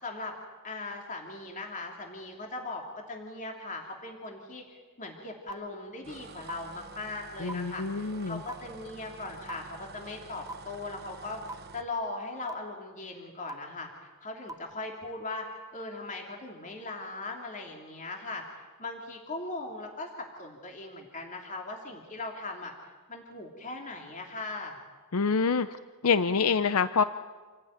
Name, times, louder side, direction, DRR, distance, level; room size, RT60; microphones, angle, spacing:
voice 1, 0.0-0.3 0.6-22.7 23.1-24.8, left 2 dB, 35° left, 1 dB, 3.0 m, -39 dB
sound 1, 5.5-5.6 6.5-6.6 7.5-7.6 8.5-8.6 9.5-9.6 10.5-10.6 11.5-11.6 12.5-12.6 13.5-13.6 14.5-14.6, right 2 dB, 15° right, 0.8 m, -37 dB
sound 2, 6.0-11.9, right 4 dB, 50° right, 1.0 m, -49 dB
voice 2, 7.4-8.4 25.1-25.7 26.0-27.0, left 5 dB, 80° left, 12 dB, 0.7 m, -26 dB
28.5 x 17.5 x 9.4 m, 1.4 s
head